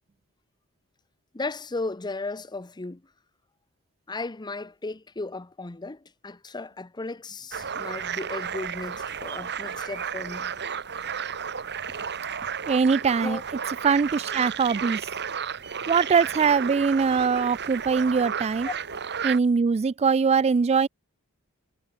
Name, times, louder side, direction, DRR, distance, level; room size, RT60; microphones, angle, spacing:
voice 1, 1.3-3.0 4.1-10.5 13.2-13.4 18.6-18.7, left 3 dB, 20° left, 0.7 m, -35 dB
sound 1, 7.5-19.4, right 7 dB, 50° right, 2.5 m, -33 dB
voice 2, 12.7-13.4 13.8-15.1 15.9-18.7 19.2-20.9, right 5 dB, 30° right, 0.3 m, -22 dB
head